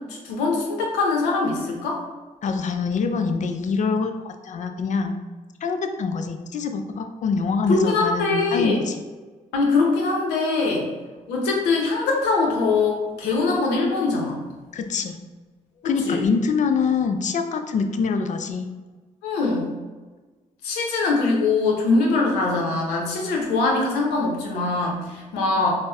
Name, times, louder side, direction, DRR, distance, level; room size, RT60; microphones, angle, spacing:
voice 1, 0.1-2.0 7.7-8.8 9.5-10.9 11.3-14.4 15.8-16.2 19.2-19.7 20.6-25.7, left 3 dB, 85° left, -1 dB, 0.6 m, -22 dB
voice 2, 2.4-5.2 5.6-9.0 10.7-10.8 14.7-15.2 15.8-18.7, left 5 dB, 45° left, 6 dB, 0.4 m, -25 dB
4.0 x 2.0 x 2.3 m, 1.3 s
supercardioid pair, 50°, 17 cm